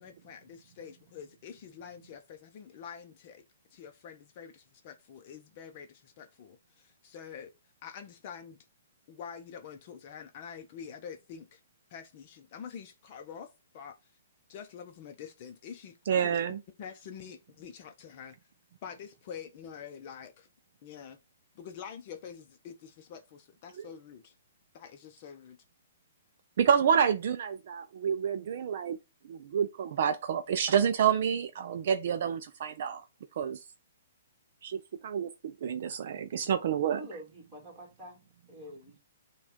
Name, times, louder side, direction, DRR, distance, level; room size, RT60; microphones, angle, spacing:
voice 1, 0.0-3.4 3.7-6.6 7.0-7.5 7.8-8.6 9.1-11.6 11.9-13.5 13.7-13.9 14.5-15.9 16.2-16.4 16.8-18.3 18.8-20.5 20.8-21.2 21.6-24.3 24.7-25.6, left 7 dB, 35° left, 0.6 m, -46 dB
voice 2, 16.1-16.6 23.7-23.9 26.6-29.0 29.2-33.0 33.4-33.6 34.6-37.0, right 8 dB, 50° right, 0.4 m, -28 dB
voice 3, 37.0-39.0, equal, 15° right, 1.8 m, -47 dB
6.1 x 2.3 x 3.5 m
hypercardioid pair, 165°, 0 cm